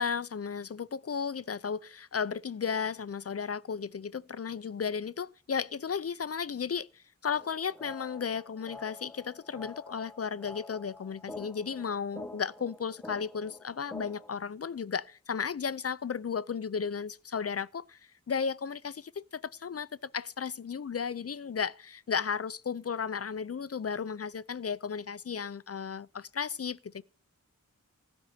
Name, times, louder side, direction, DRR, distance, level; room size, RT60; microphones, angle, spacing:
voice 1, 0.0-18.0 18.3-27.0, left 6 dB, 50° left, 0.5 m, -34 dB
sound 1, 7.3-14.3, left 2 dB, 5° left, 0.7 m, -47 dB
16.0 x 5.4 x 9.3 m
wide cardioid pair, 65°, 31 cm